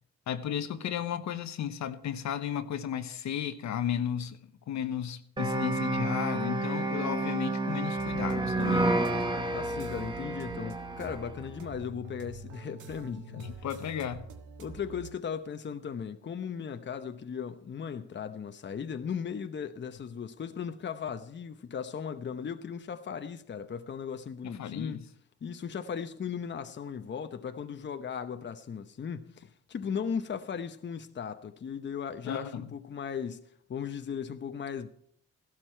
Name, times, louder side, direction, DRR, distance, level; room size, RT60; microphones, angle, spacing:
voice 1, 0.3-4.4 4.7-8.9 13.3-14.2 24.4-25.0 32.2-32.7, left 9 dB, 65° left, 1.1 m, -34 dB
sound 1, 5.4-11.3, right 2 dB, 15° right, 1.3 m, -30 dB
sound 2, 8.0-15.1, right 5 dB, 80° right, 1.7 m, -46 dB
voice 2, 9.5-13.4 14.6-25.0 25.4-33.4 33.7-34.9, left 7 dB, 40° left, 0.9 m, -37 dB
15.5 x 12.5 x 4.5 m
cardioid pair, 90°, 30 cm